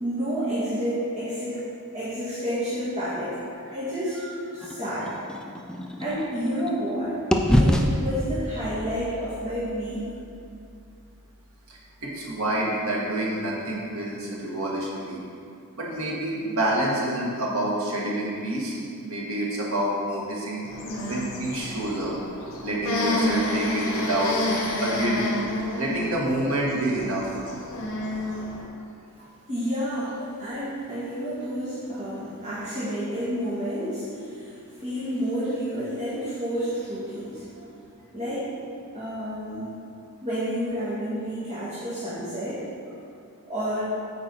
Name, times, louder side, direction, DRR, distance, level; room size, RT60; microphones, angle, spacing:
voice 1, 0.0-1.6 1.9-3.4 3.7-4.3 4.5-5.2 6.0-7.3 7.6-10.1 29.5-37.4 38.1-38.5 38.9-39.8 40.2-42.7 43.5-43.9, equal, 30° right, -11 dB, 1.7 m, -30 dB
sound 1, 4.6-6.9 7.3-11.3, equal, 5° left, 0.3 m, -27 dB
voice 2, 11.7-15.2 15.8-18.8 19.0-20.6 21.1-22.1 22.6-25.2 25.8-27.2 37.5-37.7, right 1 dB, 65° right, -4 dB, 1.6 m, -28 dB
sound 2, 20.6-28.6, left 1 dB, 60° left, 1.5 m, -30 dB
8.7 x 4.7 x 4.4 m, 2.4 s
head